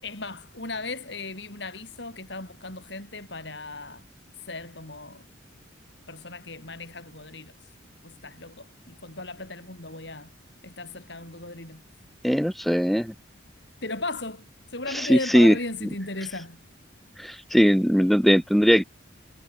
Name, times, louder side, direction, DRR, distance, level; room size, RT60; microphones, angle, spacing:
voice 1, 0.0-4.1 4.4-5.2 6.1-7.7 8.0-10.4 10.6-11.8 13.8-16.6, left 2 dB, 60° left, 6.4 m, -36 dB
voice 2, 12.2-13.1 15.1-15.5 17.2-18.8, equal, ahead, 1.0 m, -19 dB
head